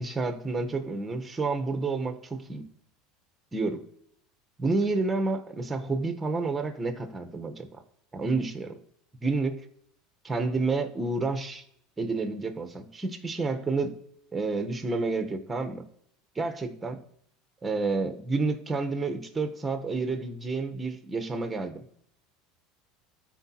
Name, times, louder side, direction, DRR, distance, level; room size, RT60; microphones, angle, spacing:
voice 1, 0.0-2.7 3.5-3.8 4.6-7.8 8.1-8.8 9.2-9.6 10.2-11.6 12.0-14.0 14.3-15.9 16.3-17.0 17.6-21.8, right 3 dB, 15° right, 7 dB, 1.0 m, -29 dB
13.5 x 4.6 x 2.9 m, 0.70 s
supercardioid pair, 110°, 0 cm